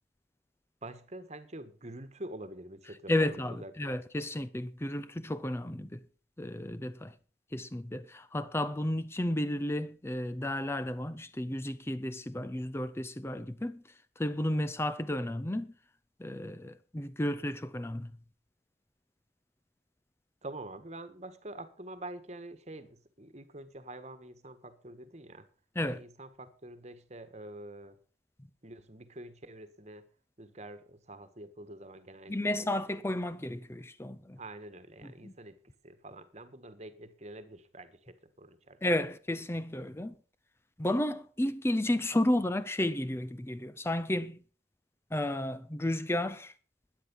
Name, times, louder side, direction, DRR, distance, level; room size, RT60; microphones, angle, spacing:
voice 1, 0.8-3.9 20.4-25.5 25.8-28.0 28.6-30.0 30.4-32.8 34.4-35.5 35.8-38.8, right 1 dB, 35° right, 1.4 m, -46 dB
voice 2, 3.1-6.0 6.4-7.1 7.5-13.8 14.2-15.7 16.2-18.1 25.8-26.0 32.3-34.4 35.2-35.3 38.8-40.1 40.8-44.4 45.1-46.5, left 1 dB, 15° left, 0.5 m, -32 dB
13.0 x 10.0 x 5.5 m
head